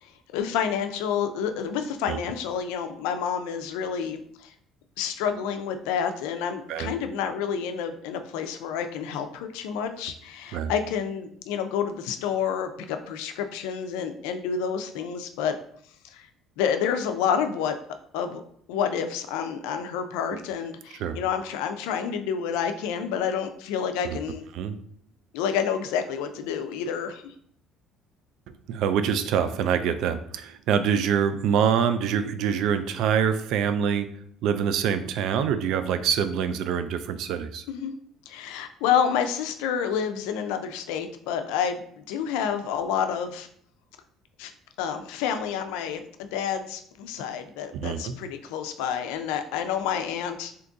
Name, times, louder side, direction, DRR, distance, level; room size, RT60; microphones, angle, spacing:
voice 1, 0.0-4.5 5.0-15.5 16.1-16.3 16.6-17.8 18.1-18.4 18.7-24.5 25.3-27.3 37.7-37.9 38.3-43.5 44.4-44.5 44.8-50.5, left 7 dB, 90° left, 7 dB, 0.4 m, -29 dB
voice 2, 28.7-34.1 34.4-37.6 47.7-48.2, right 8 dB, 70° right, 10 dB, 0.3 m, -25 dB
2.8 x 2.5 x 3.5 m, 0.65 s
cardioid pair, 100°, 0 cm